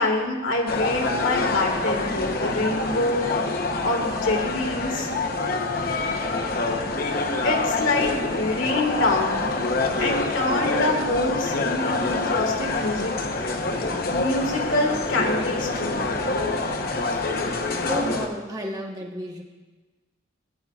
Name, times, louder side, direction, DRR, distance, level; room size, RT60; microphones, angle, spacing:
voice 1, 0.0-3.5 3.8-5.1 7.4-9.4 10.0-13.1 13.4-13.6 14.1-16.1, left 2 dB, 90° left, 0 dB, 1.8 m, -26 dB
sound 1, 0.7-18.3, left 3 dB, 50° left, 0.9 m, -26 dB
voice 2, 17.9-19.4, equal, 20° right, 0 dB, 1.2 m, -31 dB
16.5 x 9.8 x 2.4 m, 1.2 s
head